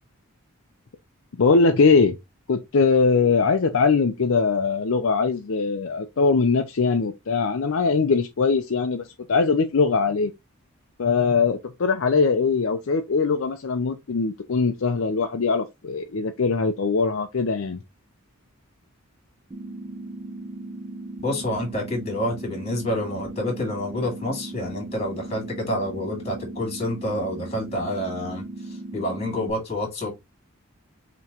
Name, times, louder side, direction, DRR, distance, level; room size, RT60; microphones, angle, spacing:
voice 1, 1.4-2.2 2.5-10.3 11.0-17.8, left 4 dB, 65° left, 0.5 m, -21 dB
sound 1, 19.5-29.5, right 2 dB, 25° right, 0.5 m, -37 dB
voice 2, 21.2-28.4 28.9-30.1, left 1 dB, 30° left, 2.2 m, -28 dB
5.7 x 3.0 x 2.9 m
head